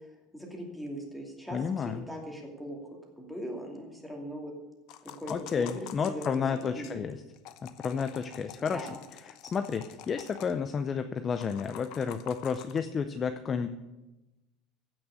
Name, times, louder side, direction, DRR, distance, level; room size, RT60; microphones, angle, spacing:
voice 1, 0.3-1.6 1.8-2.8 3.2-4.5 5.2-6.3 6.5-7.0 8.7-8.9, equal, ahead, 0 dB, 2.5 m, -40 dB
voice 2, 1.5-2.0 5.3-7.2 7.6-8.9 9.3-13.7, left 6 dB, 25° left, 9 dB, 0.5 m, -31 dB
sound 1, 4.9-6.9 7.3-10.5 11.3-12.8, left 12 dB, 55° left, 0.8 m, -48 dB
15.5 x 6.2 x 8.2 m, 1.0 s
cardioid pair, 160°, 0 cm